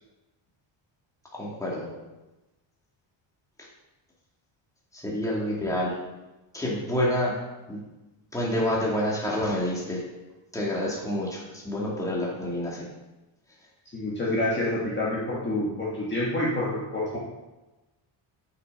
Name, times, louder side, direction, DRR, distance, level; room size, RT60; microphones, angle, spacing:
voice 1, 1.3-1.9 4.9-6.0 6.5-7.3 7.7-7.8 8.3-10.0 10.5-12.9, left 1 dB, 5° left, -5 dB, 2.2 m, -28 dB
voice 2, 13.9-17.2, left 1 dB, 25° left, -6 dB, 1.8 m, -27 dB
8.1 x 6.0 x 5.3 m, 1.1 s
cardioid pair, 150°, 48 cm